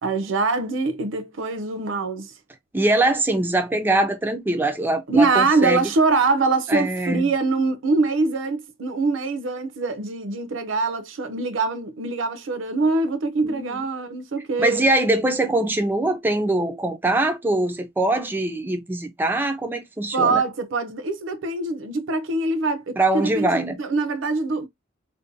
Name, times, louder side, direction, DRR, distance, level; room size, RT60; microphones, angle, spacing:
voice 1, 0.0-2.3 5.1-14.8 20.1-24.7, right 3 dB, 75° right, 0.5 m, -23 dB
voice 2, 2.7-5.9 6.7-7.3 13.4-13.8 14.6-20.4 23.0-23.8, right 2 dB, 10° right, 0.3 m, -22 dB
2.6 x 2.1 x 2.5 m
head